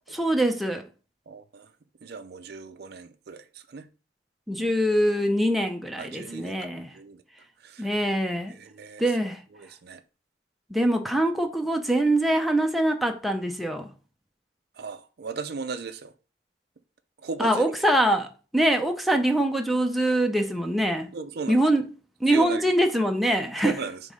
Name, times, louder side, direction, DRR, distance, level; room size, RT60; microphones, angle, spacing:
voice 1, 0.1-0.8 4.5-6.9 7.8-8.6 9.0-9.4 10.7-13.9 17.4-21.1 21.5-21.9 22.2-23.8, right 1 dB, ahead, 0.6 m, -24 dB
voice 2, 1.3-1.7 2.0-3.9 6.0-6.6 6.9-7.2 7.6-7.9 8.5-9.0 9.5-10.0 14.8-16.1 17.2-17.7 21.1-21.6 22.3-22.7 23.6-24.0, right 4 dB, 55° right, 0.4 m, -36 dB
5.2 x 3.7 x 5.2 m
head